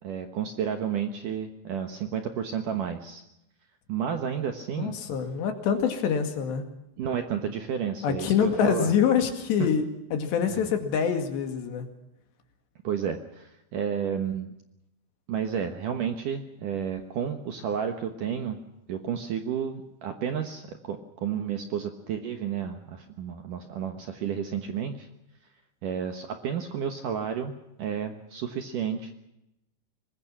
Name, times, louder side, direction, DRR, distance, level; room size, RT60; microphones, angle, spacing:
voice 1, 0.0-3.2 3.9-4.9 7.0-8.9 9.6-9.7 10.5-10.6 12.8-14.5 15.3-18.6 18.9-25.1 25.8-29.1, right 8 dB, 65° right, 6 dB, 2.2 m, -31 dB
voice 2, 4.7-6.7 8.0-9.9 10.1-11.9, left 7 dB, 70° left, 6 dB, 4.2 m, -25 dB
24.5 x 20.5 x 6.0 m, 0.86 s
omnidirectional pair, 5.3 m